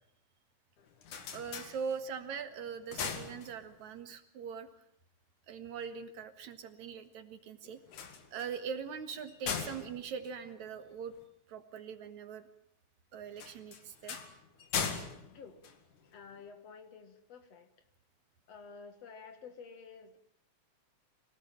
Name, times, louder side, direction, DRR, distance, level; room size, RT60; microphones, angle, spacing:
sound 1, 0.8-2.3 2.7-4.0 7.8-11.3 13.3-16.4, left 6 dB, 80° left, 3.6 m, -40 dB
voice 1, 1.3-4.7 5.5-7.8 8.3-11.1 11.5-12.5 13.1-14.2, right 6 dB, 70° right, 9 dB, 3.0 m, -41 dB
voice 2, 16.1-17.7 18.5-20.2, left 5 dB, 60° left, 9 dB, 2.8 m, -51 dB
25.0 x 18.0 x 9.0 m, 0.69 s
omnidirectional pair, 3.4 m